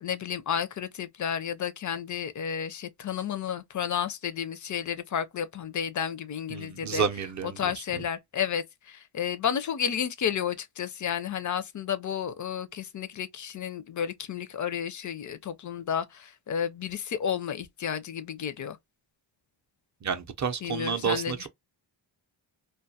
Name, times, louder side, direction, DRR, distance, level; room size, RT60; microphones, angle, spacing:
voice 1, 0.0-7.0 7.6-18.8 20.6-21.5, left 8 dB, 40° left, 0.4 m, -32 dB
voice 2, 6.5-7.6 7.9-8.0 20.0-21.5, right 6 dB, 40° right, 0.5 m, -30 dB
2.2 x 2.1 x 2.6 m
wide cardioid pair, 110°, 48 cm